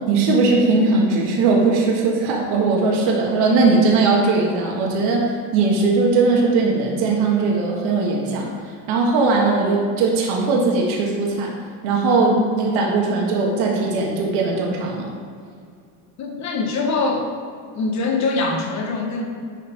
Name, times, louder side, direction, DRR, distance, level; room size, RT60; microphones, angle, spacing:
voice 1, 0.1-8.5 8.9-11.5 11.8-15.1, right 3 dB, 70° right, -2 dB, 1.6 m, -19 dB
voice 2, 16.2-17.3 17.7-19.2, left 3 dB, 45° left, 2 dB, 1.3 m, -23 dB
10.0 x 4.4 x 4.5 m, 2.2 s
cardioid pair, 150°, 41 cm